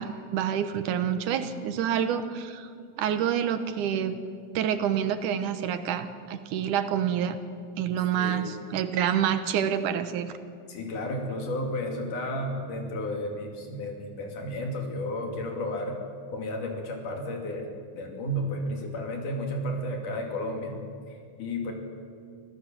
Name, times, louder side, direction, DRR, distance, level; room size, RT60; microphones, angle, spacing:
voice 1, 0.0-2.7 3.0-4.1 4.5-7.4 7.8-10.3, right 9 dB, 80° right, 10 dB, 2.5 m, -27 dB
voice 2, 8.2-8.5 10.7-16.0 16.3-21.7, left 1 dB, 75° left, 2 dB, 4.2 m, -33 dB
25.5 x 16.0 x 7.5 m, 2.3 s
omnidirectional pair, 3.6 m